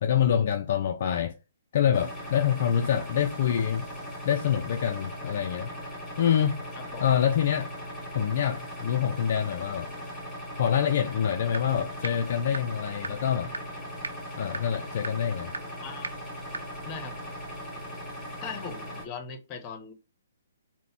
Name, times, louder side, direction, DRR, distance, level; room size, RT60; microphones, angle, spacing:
voice 1, 0.0-1.4 1.7-3.9 4.3-5.7 6.2-6.7 7.0-7.7 8.2-9.9 10.6-13.5 14.4-15.5, left 9 dB, 50° left, 0.3 m, -26 dB
sound 1, 1.9-19.1, equal, 5° left, 1.7 m, -39 dB
voice 2, 6.8-7.1 15.8-16.1 16.8-17.2 18.4-19.9, left 5 dB, 25° left, 0.7 m, -39 dB
sound 2, 11.5-11.6 12.0-12.1 12.5-12.6 13.0-13.1 13.5-13.6 14.0-14.1 14.5-14.6 15.0-15.1 15.5-15.6 16.0-16.1 16.5-16.6, right 3 dB, 75° right, 0.4 m, -32 dB
3.9 x 2.1 x 4.2 m
figure-of-eight pair, 130°, 0 cm